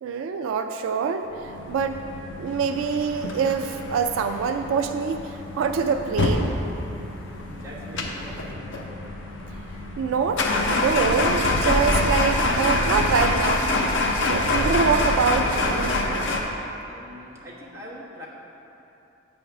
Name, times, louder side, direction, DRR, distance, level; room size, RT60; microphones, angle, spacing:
voice 1, 0.0-2.0 2.4-6.5 10.0-13.7 14.2-16.0, right 5 dB, 80° right, 6 dB, 0.3 m, -25 dB
sound 1, 1.4-16.4, left 2 dB, 65° left, 0.6 m, -26 dB
voice 2, 7.5-8.4 16.8-18.3, equal, 15° right, -7 dB, 1.2 m, -42 dB
7.9 x 3.6 x 5.8 m, 3.0 s
head